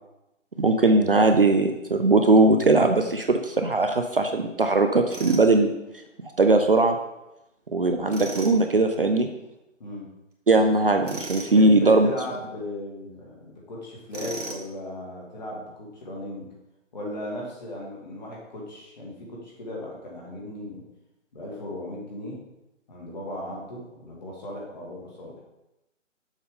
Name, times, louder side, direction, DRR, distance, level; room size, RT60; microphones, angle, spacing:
voice 1, 0.6-5.7 6.4-7.0 7.7-9.3 10.5-12.1, right 2 dB, 45° right, 6 dB, 0.5 m, -19 dB
Tools, 5.1-5.5 8.1-8.6 11.0-11.5 14.1-14.7, right 3 dB, 70° right, 1.7 m, -35 dB
voice 2, 11.3-16.5 16.9-20.8 21.3-22.4 22.9-25.4, left 1 dB, 35° left, -3 dB, 2.1 m, -36 dB
7.1 x 5.4 x 3.7 m, 0.90 s
figure-of-eight pair, 155°, 38 cm